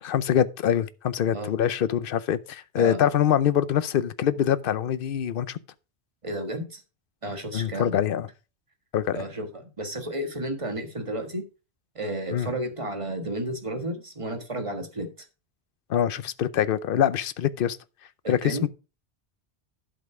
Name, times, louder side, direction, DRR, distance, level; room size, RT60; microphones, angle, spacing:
voice 1, 0.0-5.6 7.5-8.3 8.9-9.2 12.3-12.5 15.9-17.8 18.3-18.7, left 9 dB, 60° left, 0.8 m, -24 dB
voice 2, 2.8-3.1 6.2-6.8 7.2-8.0 9.1-11.4 12.0-15.3 18.2-18.7, right 1 dB, 30° right, 1.6 m, -32 dB
11.5 x 5.6 x 4.8 m
omnidirectional pair, 1.1 m